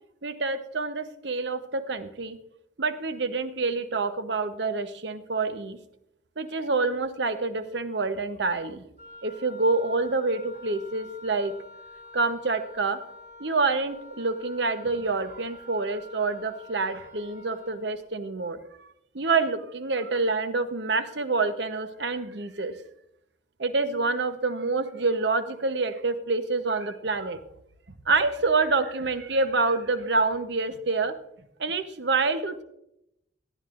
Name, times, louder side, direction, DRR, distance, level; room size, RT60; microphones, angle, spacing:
voice 1, 0.2-2.4 2.8-5.8 6.4-8.8 9.2-11.5 12.1-13.0 13.4-18.9 19.1-22.8 23.6-27.4 28.1-31.1 31.6-32.6, right 3 dB, 70° right, 10 dB, 0.9 m, -27 dB
Wind instrument woodwind instrument, 9.0-17.8, left 2 dB, 40° right, 3.8 m, -47 dB
17.5 x 11.5 x 2.5 m, 0.79 s
head